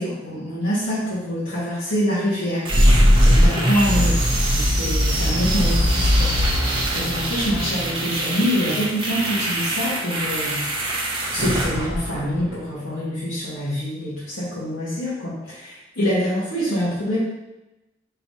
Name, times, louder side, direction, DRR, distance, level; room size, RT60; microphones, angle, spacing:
voice 1, 0.0-2.7 3.2-4.3 4.5-10.6 11.3-17.2, equal, 85° left, -10 dB, 1.4 m, -25 dB
sound 1, 2.6-12.6, equal, 25° right, 0.8 m, -20 dB
5.5 x 3.4 x 2.8 m, 0.96 s
head